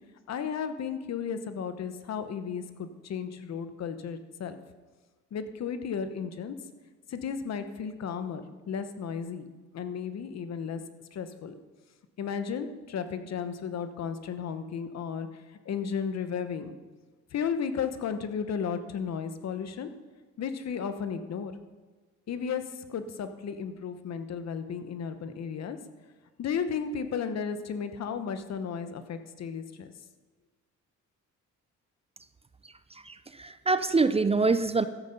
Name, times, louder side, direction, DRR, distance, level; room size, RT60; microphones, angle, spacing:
voice 1, 0.3-4.6 5.3-6.6 7.1-9.4 9.7-10.8 11.1-11.5 12.2-16.7 17.3-19.9 20.4-21.5 22.3-25.8 26.4-29.9, left 6 dB, 60° left, 10 dB, 1.0 m, -34 dB
voice 2, 33.1-34.9, right 4 dB, 20° right, 12 dB, 0.5 m, -25 dB
13.5 x 7.9 x 5.3 m, 1.3 s
cardioid pair, 90°, 30 cm